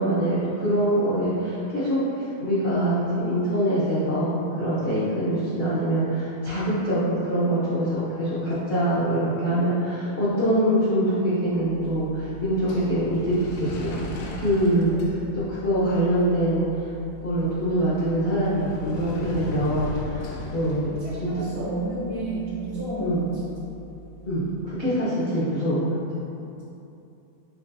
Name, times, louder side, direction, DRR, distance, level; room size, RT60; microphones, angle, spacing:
voice 1, 0.0-14.9 15.3-16.6 17.2-20.9 21.2-21.4 23.0-23.3 24.3-25.9, right 1 dB, 90° left, -11 dB, 0.5 m, -24 dB
sound 1, 11.6-24.7, left 1 dB, 75° left, 1.2 m, -39 dB
voice 2, 20.8-23.6 26.5-26.6, right 2 dB, 80° right, -9 dB, 2.2 m, -32 dB
7.3 x 2.6 x 2.3 m, 2.8 s
omnidirectional pair, 2.3 m